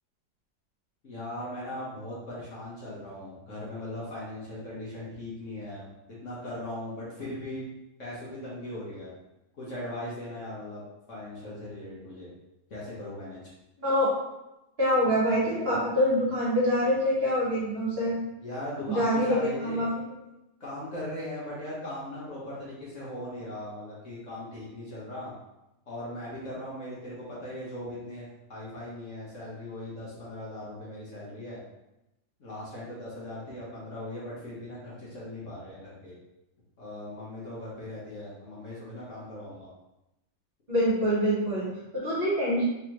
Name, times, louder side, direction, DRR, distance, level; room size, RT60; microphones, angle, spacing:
voice 1, 1.0-5.9 6.2-7.6 8.0-9.1 9.5-10.8 11.1-12.3 12.7-13.4 18.4-19.9 20.6-25.3 25.9-31.6 32.4-36.2 36.8-39.7, left 1 dB, 50° left, -7 dB, 1.3 m, -39 dB
voice 2, 14.8-18.2 18.9-20.0 40.7-42.7, equal, 40° right, -8 dB, 1.4 m, -25 dB
3.5 x 3.2 x 3.0 m, 0.92 s
omnidirectional pair, 1.8 m